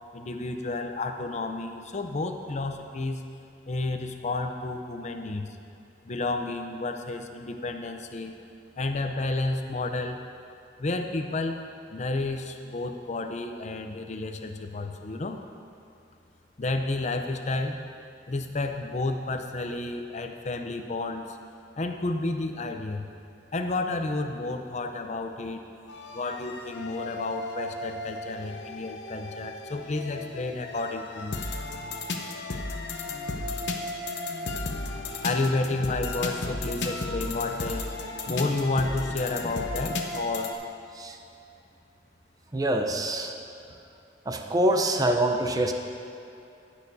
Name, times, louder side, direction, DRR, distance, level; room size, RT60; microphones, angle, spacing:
voice 1, 0.1-3.2 3.7-5.5 6.0-8.3 8.8-10.2 10.8-11.6 11.9-15.4 16.6-17.8 18.3-21.4 21.8-23.1 23.5-25.6 26.1-31.4 35.2-37.9 38.3-40.5, left 2 dB, 40° left, 5 dB, 0.6 m, -31 dB
sound 1, 25.9-40.6, left 2 dB, 75° left, 0.8 m, -34 dB
voice 2, 42.5-43.4 44.2-45.7, right 1 dB, 20° right, 4 dB, 0.6 m, -25 dB
18.0 x 6.6 x 2.7 m, 2.6 s
head